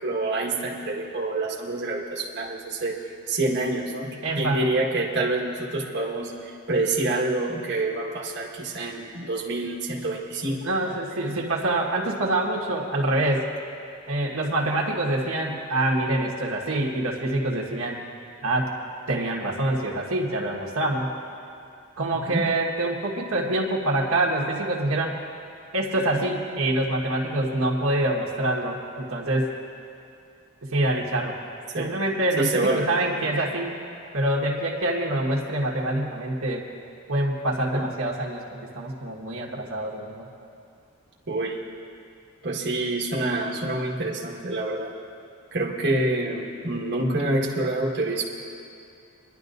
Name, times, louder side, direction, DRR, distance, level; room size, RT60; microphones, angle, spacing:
voice 1, 0.0-3.0 3.3-4.1 4.4-10.6 22.1-22.5 31.7-31.9 32.4-32.9 37.7-37.8 41.3-41.6 42.4-44.9 45.5-48.2, right 2 dB, 55° right, -3 dB, 1.6 m, -27 dB
voice 2, 4.2-4.7 10.6-13.4 14.1-18.0 18.4-18.7 19.1-21.1 22.0-25.2 25.7-29.5 30.7-31.4 31.8-33.8 34.1-36.6 37.1-40.3 47.2-47.3, right 1 dB, 90° right, -1 dB, 1.6 m, -25 dB
25.0 x 11.5 x 2.7 m, 2.5 s
head